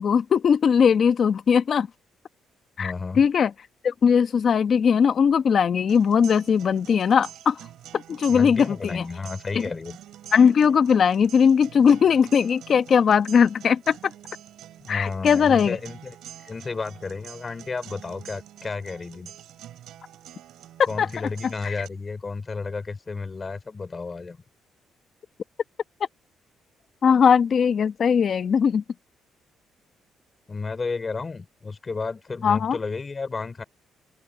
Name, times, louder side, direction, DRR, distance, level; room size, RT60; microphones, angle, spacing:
voice 1, 0.0-1.9 2.8-3.5 3.8-7.6 7.9-9.0 9.5-9.7 10.3-14.1 14.9-15.8 20.8-21.1 21.6-21.7 27.0-28.8 32.4-32.8, left 7 dB, 55° left, 1.2 m, -19 dB
voice 2, 2.8-3.2 8.3-10.0 14.8-16.2 16.4-19.3 20.9-24.4 30.5-33.6, left 4 dB, 30° left, 4.3 m, -32 dB
sound 1, 5.9-21.9, right 12 dB, 80° right, 5.8 m, -46 dB
cardioid pair, 90°, 0 cm